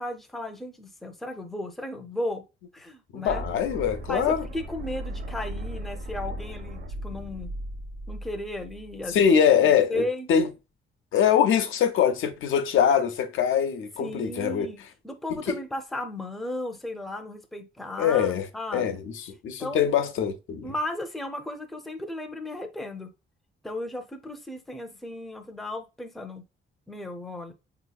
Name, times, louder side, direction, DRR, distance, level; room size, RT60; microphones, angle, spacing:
voice 1, 0.0-2.4 2.7-3.4 4.1-7.5 8.1-9.3 9.6-10.3 14.0-19.0 19.6-19.9 20.6-23.1 23.6-26.4 26.9-27.5, left 1 dB, ahead, 0.4 m, -35 dB
voice 2, 3.1-4.4 9.1-10.0 10.3-10.5 11.1-14.7 15.3-15.4 18.0-18.4 18.7-19.0 19.4-20.7, left 8 dB, 90° left, 0.6 m, -23 dB
sound 1, 3.3-9.2, right 1 dB, 80° right, 1.0 m, -37 dB
4.4 x 2.8 x 2.2 m
wide cardioid pair, 155°, 20 cm